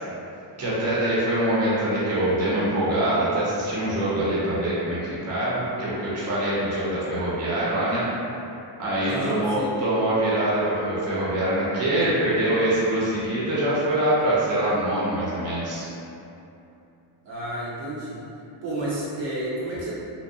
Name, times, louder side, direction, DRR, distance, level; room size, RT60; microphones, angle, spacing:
voice 1, 0.6-8.0 8.8-15.9, right 1 dB, 30° right, -9 dB, 0.8 m, -24 dB
voice 2, 9.0-9.7 17.2-18.2 18.6-19.9, right 1 dB, 60° right, -9 dB, 0.8 m, -30 dB
2.7 x 2.2 x 2.3 m, 2.8 s
cardioid pair, 100°, 49 cm